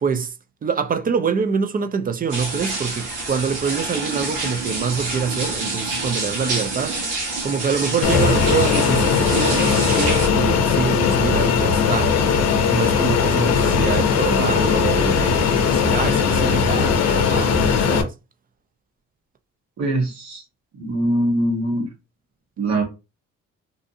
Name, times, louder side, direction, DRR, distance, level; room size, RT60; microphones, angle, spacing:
voice 1, 0.0-0.3 0.6-7.1 7.4-12.1 12.7-17.5 17.9-18.1, right 6 dB, 30° right, 0.4 m, -25 dB
sound 1, 2.3-10.3, right 3 dB, 90° right, 1.2 m, -27 dB
Fixed-wing aircraft airplane, 8.0-18.0, left 6 dB, 60° left, 0.6 m, -19 dB
voice 2, 19.8-20.4 20.7-21.9 22.6-22.8, right 1 dB, 65° right, 1.2 m, -22 dB
2.6 x 2.4 x 2.6 m
cardioid pair, 90°, 30 cm